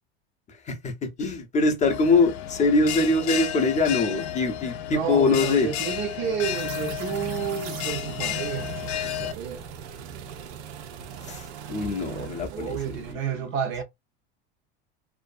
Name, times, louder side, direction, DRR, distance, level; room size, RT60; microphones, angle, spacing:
voice 1, 0.7-5.7 11.2-12.8 13.1-13.2, left 3 dB, 25° left, 0.5 m, -23 dB
Bell, 1.8-9.3, left 11 dB, 85° left, 0.6 m, -32 dB
voice 2, 4.9-9.7 12.5-13.8, right 8 dB, 40° right, 0.4 m, -31 dB
sound 1, 6.5-13.1, right 8 dB, 90° right, 0.6 m, -39 dB
2.5 x 2.3 x 2.5 m
supercardioid pair, 135°, 32 cm